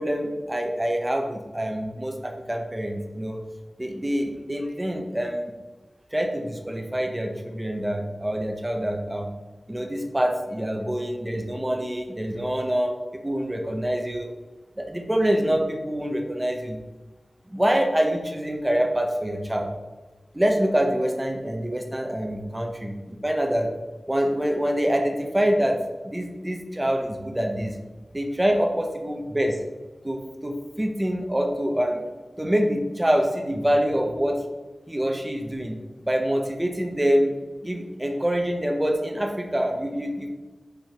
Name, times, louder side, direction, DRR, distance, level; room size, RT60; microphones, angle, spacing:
voice 1, 0.0-3.4 3.8-5.5 6.1-9.3 9.7-12.9 13.2-14.3 14.8-16.8 17.5-19.7 20.3-23.7 24.1-25.8 26.0-27.8 28.1-29.6 30.0-32.0 32.4-34.4 34.9-35.8 36.0-37.3 37.6-40.3, equal, 15° right, 3 dB, 1.1 m, -25 dB
6.1 x 5.1 x 5.2 m, 1.3 s
wide cardioid pair, 75°, 0 cm